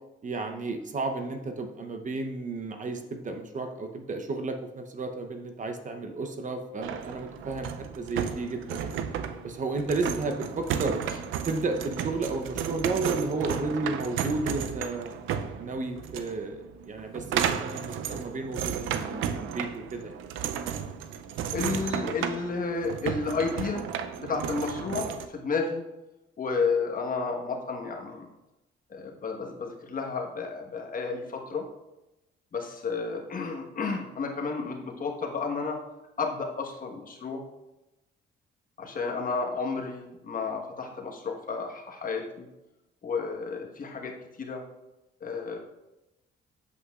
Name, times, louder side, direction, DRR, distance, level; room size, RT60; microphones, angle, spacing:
voice 1, 0.2-9.0 9.4-11.0 11.5-15.2 15.6-20.1, right 3 dB, 40° right, 5 dB, 0.8 m, -32 dB
sound 1, 6.8-25.3, right 8 dB, 85° right, 0.5 m, -33 dB
voice 2, 21.5-23.8 24.2-25.8 26.4-28.3 28.9-31.6 32.5-35.8 36.2-37.4 38.8-42.4 43.0-44.6 45.2-45.6, left 4 dB, 45° left, 1 dB, 1.3 m, -32 dB
8.2 x 7.8 x 2.4 m, 0.98 s
cardioid pair, 90°, 20 cm